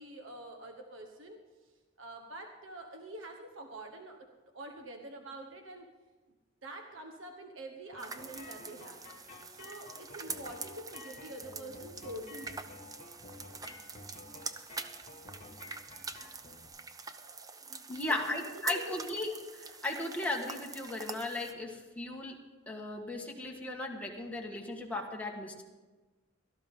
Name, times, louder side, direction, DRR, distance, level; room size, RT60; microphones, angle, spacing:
voice 1, 0.0-1.4 2.0-4.2 4.5-5.9 6.6-9.0 9.5-12.6 17.1-19.2, right 1 dB, 75° right, 3 dB, 1.2 m, -46 dB
sound 1, 7.9-16.7, left 2 dB, 40° left, 2.0 m, -51 dB
sound 2, 8.0-21.5, right 4 dB, 20° right, 0.6 m, -45 dB
voice 2, 17.9-19.3 19.7-22.4 22.7-25.6, left 2 dB, 5° left, -1 dB, 1.6 m, -36 dB
17.0 x 13.0 x 3.8 m, 1.3 s
head